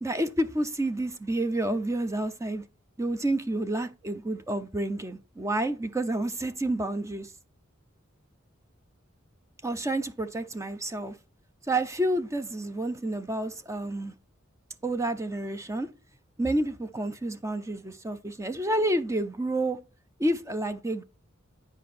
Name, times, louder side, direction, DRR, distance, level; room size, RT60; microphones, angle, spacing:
voice 1, 0.0-2.6 3.0-7.3 9.6-11.2 11.7-14.1 14.8-15.9 16.4-19.8 20.2-21.0, right 1 dB, 15° right, 0.5 m, -29 dB
9.4 x 5.0 x 4.2 m
head